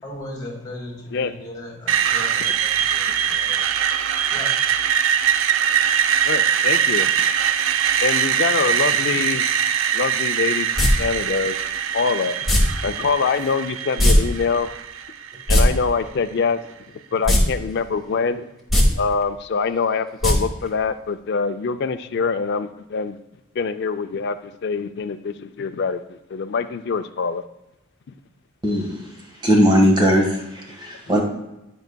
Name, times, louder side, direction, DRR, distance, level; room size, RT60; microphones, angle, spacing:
voice 1, 0.0-3.9 4.3-4.5, left 1 dB, 20° left, -3 dB, 2.0 m, -37 dB
Screech, 1.9-15.8, right 8 dB, 70° right, 0.4 m, -22 dB
voice 2, 6.2-7.1 8.0-9.5 9.9-11.6 11.9-12.4 12.8-14.7 15.5-16.6 17.1-18.5 19.0-23.2 23.6-27.4, left 5 dB, 55° left, 10 dB, 0.4 m, -24 dB
sound 1, 10.8-10.9 12.5-12.6 14.0-14.2 14.4-14.5 15.3-15.6 17.2-17.4 17.8-17.9 18.6-18.8 20.2-20.3 20.7-20.8, left 1 dB, ahead, 1.3 m, -16 dB
voice 3, 28.6-29.1 29.4-31.2, equal, 20° right, 1 dB, 1.4 m, -18 dB
10.5 x 5.5 x 2.2 m, 0.92 s
head